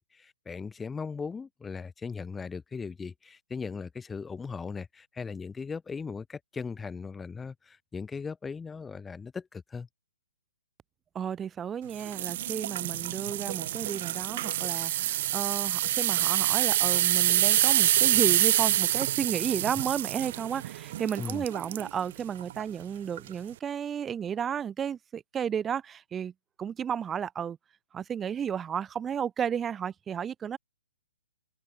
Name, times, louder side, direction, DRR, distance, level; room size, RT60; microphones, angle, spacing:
voice 1, 0.0-9.9 21.2-21.4, left 5 dB, 10° left, 2.8 m, -38 dB
voice 2, 11.1-26.3 26.6-27.6 27.9-30.6, right 8 dB, 15° right, 5.7 m, -33 dB
sound 1, 12.0-21.9 22.4-22.6 23.2-23.3, right 14 dB, 45° right, 0.5 m, -27 dB
hypercardioid pair, 135°, 0 cm